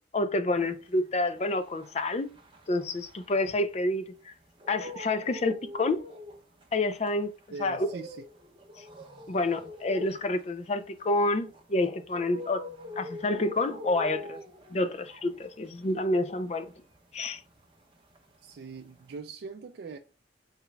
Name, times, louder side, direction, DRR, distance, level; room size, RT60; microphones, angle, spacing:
voice 1, 0.1-2.3 2.7-4.3 4.7-6.0 6.7-7.3 7.6-7.9 9.3-12.6 13.0-14.4 14.7-16.7 17.1-17.4, left 2 dB, 35° left, 0.4 m, -28 dB
sound 1, 0.8-4.0 4.4-17.8 18.1-19.1, left 1 dB, 30° right, 1.0 m, -44 dB
voice 2, 7.5-8.2 18.4-20.0, right 4 dB, 70° right, 0.4 m, -41 dB
4.2 x 3.9 x 2.2 m
head